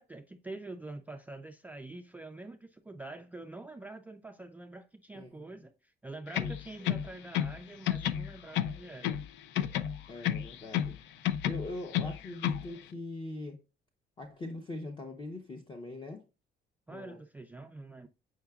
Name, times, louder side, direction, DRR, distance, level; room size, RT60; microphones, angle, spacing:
voice 1, 0.0-9.2 16.9-18.1, right 2 dB, 10° right, 0.3 m, -46 dB
voice 2, 5.1-5.4 6.4-6.5 6.8-7.0 10.1-11.0 11.4-13.6 14.2-16.3 16.9-17.2, left 2 dB, 25° left, 0.7 m, -42 dB
sound 1, 6.3-7.6 7.9-9.3 9.6-11.0 11.2-12.7, left 11 dB, 85° left, 0.5 m, -31 dB
8.0 x 5.6 x 2.3 m
cardioid pair, 160°, 18 cm